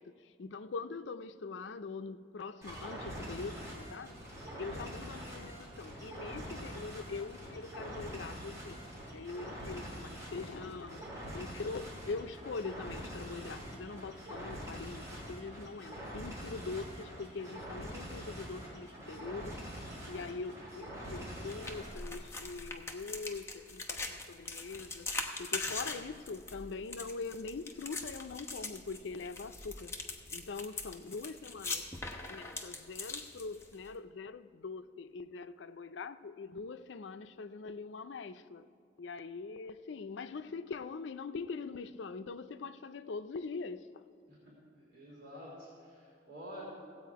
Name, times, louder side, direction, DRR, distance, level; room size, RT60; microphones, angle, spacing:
voice 1, 0.0-4.2 4.6-8.8 9.1-11.1 11.3-25.1 25.4-30.0 30.3-31.9 32.3-38.7 39.0-44.0, left 4 dB, 80° left, 0.5 m, -43 dB
sound 1, 2.6-22.0, equal, 20° right, 3.2 m, -44 dB
sound 2, 21.5-33.9, left 3 dB, 15° left, 0.9 m, -42 dB
voice 2, 44.3-46.7, equal, 65° right, 3.2 m, -49 dB
16.0 x 8.4 x 4.7 m
head